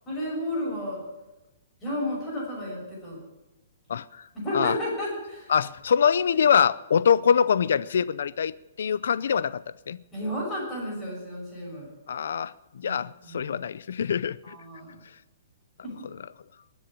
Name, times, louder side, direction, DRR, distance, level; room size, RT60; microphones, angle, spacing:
voice 1, 0.1-1.0 1.8-3.2 4.3-5.5 10.1-11.9 12.8-13.5 14.4-15.0 15.8-16.1, left 1 dB, 10° left, -4 dB, 6.3 m, -32 dB
voice 2, 3.9-4.2 4.5-4.8 5.5-8.5 8.8-10.0 12.1-14.6, left 7 dB, 65° left, 18 dB, 0.5 m, -24 dB
20.5 x 7.1 x 9.0 m, 1.0 s
hypercardioid pair, 175°, 0 cm